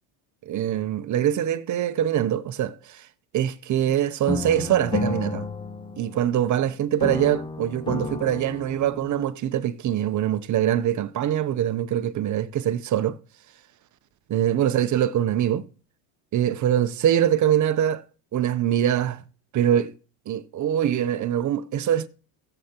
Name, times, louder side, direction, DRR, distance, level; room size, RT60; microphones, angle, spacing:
voice 1, 0.5-3.0 3.3-5.5 6.0-13.2 14.3-15.6 16.3-18.0 18.3-19.2 19.5-19.9 20.3-22.1, right 10 dB, 40° right, 0.7 m, -23 dB
sound 1, 4.3-6.6 7.0-9.3, left 3 dB, 10° left, 0.4 m, -31 dB
16.5 x 7.9 x 2.9 m
supercardioid pair, 115°, 49 cm